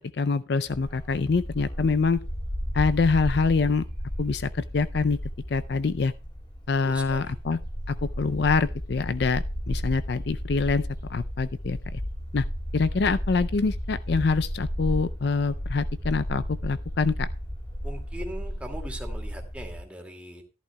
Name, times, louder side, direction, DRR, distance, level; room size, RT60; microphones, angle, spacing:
voice 1, 0.1-2.2 2.7-3.8 4.2-5.2 5.5-6.1 6.7-7.6 7.9-12.0 12.3-12.4 12.7-17.3, left 4 dB, 60° left, 0.5 m, -25 dB
Bark, 0.6-19.8, equal, 25° left, 4.0 m, -33 dB
voice 2, 6.8-7.3 17.8-20.4, right 1 dB, 5° right, 2.1 m, -40 dB
14.0 x 11.5 x 2.2 m
head